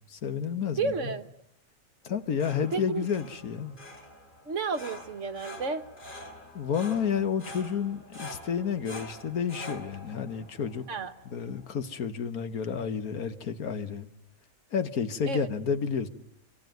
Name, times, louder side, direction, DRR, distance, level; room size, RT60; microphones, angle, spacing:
voice 1, 0.1-1.1 2.0-3.8 6.5-10.8 11.3-14.1 14.7-16.1, left 7 dB, 85° left, 1.8 m, -30 dB
voice 2, 0.8-1.3 2.7-3.1 4.5-5.8 10.9-11.1 15.3-15.5, right 4 dB, 60° right, 1.6 m, -31 dB
sound 1, 2.0-11.8, left 1 dB, 35° left, 2.9 m, -46 dB
25.0 x 25.0 x 9.3 m
omnidirectional pair, 1.5 m